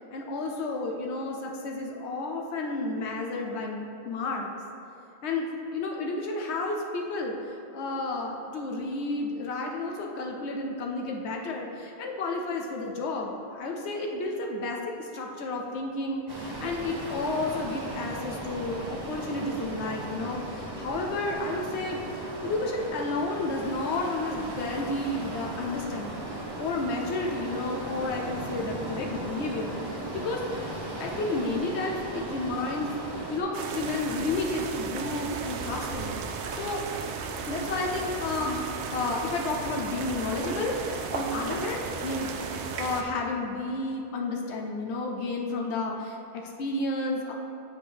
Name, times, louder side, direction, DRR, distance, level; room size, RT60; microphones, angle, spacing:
voice 1, 0.1-4.5 5.2-7.3 7.7-30.4 31.0-36.2 36.6-36.8 37.5-38.6 38.9-47.3, left 2 dB, 90° left, 1 dB, 0.9 m, -31 dB
sound 1, 16.3-33.4, right 1 dB, 30° right, 0.6 m, -37 dB
sound 2, 33.5-43.0, right 5 dB, 85° right, 0.8 m, -35 dB
7.3 x 5.0 x 3.4 m, 2.8 s
omnidirectional pair, 1.1 m